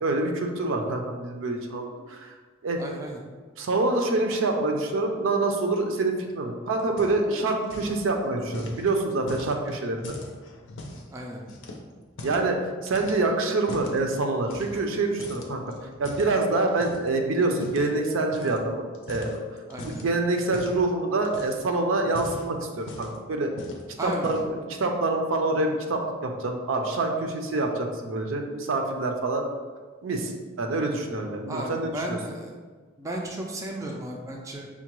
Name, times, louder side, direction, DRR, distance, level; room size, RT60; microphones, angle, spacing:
voice 1, 0.0-2.3 2.6-2.8 3.6-10.0 12.2-15.7 16.0-19.4 19.8-23.5 24.0-29.4 30.0-30.3 30.6-32.2, right 2 dB, 70° right, 3 dB, 0.5 m, -26 dB
voice 2, 2.8-3.2 11.1-11.4 19.7-20.0 24.0-24.3 31.5-32.5 33.0-34.7, right 1 dB, 15° right, 0 dB, 0.3 m, -34 dB
sound 1, 6.8-7.4 7.6-8.0 8.5-11.1 11.5-12.5 12.9-14.0 14.5-14.9 15.2-17.1 17.6-17.9 18.3-18.6 18.9-20.1 20.5-20.8 21.2-21.7 22.0-23.2 23.6-23.8 24.1-24.6, left 1 dB, 65° left, 0.5 m, -40 dB
5.5 x 2.2 x 3.0 m, 1.5 s
head